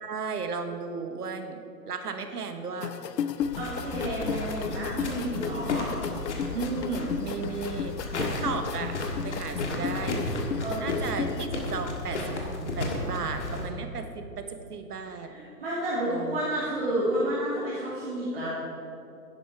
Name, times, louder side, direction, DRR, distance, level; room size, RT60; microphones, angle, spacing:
voice 1, 0.0-1.6 1.9-2.9 6.5-9.0 9.2-10.3 10.8-12.2 12.8-15.3 16.0-16.6, right 5 dB, 65° right, 7 dB, 1.3 m, -34 dB
sound 1, 2.8-11.5, left 8 dB, 75° left, 0.7 m, -34 dB
sound 2, 3.4-13.7, left 2 dB, 45° left, 1.7 m, -33 dB
voice 2, 3.6-5.9 10.6-11.1 15.3-18.5, right 1 dB, 35° right, -9 dB, 2.5 m, -30 dB
10.5 x 10.5 x 4.6 m, 2.6 s
hypercardioid pair, 170°, 49 cm